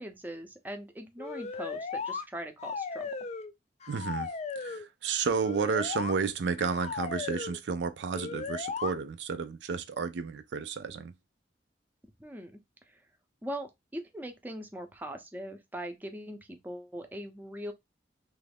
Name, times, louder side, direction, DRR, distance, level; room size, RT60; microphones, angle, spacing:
voice 1, 0.0-3.1 12.2-12.5 12.9-13.0 13.4-17.7, equal, 10° right, 0.6 m, -41 dB
sound 1, 1.2-2.2 2.6-3.5 3.8-4.8 5.3-6.1 6.6-7.6 8.1-8.9, left 4 dB, 40° left, 0.4 m, -36 dB
voice 2, 3.9-4.3 4.6-11.1, right 5 dB, 75° right, 0.4 m, -31 dB
3.1 x 2.4 x 3.4 m
head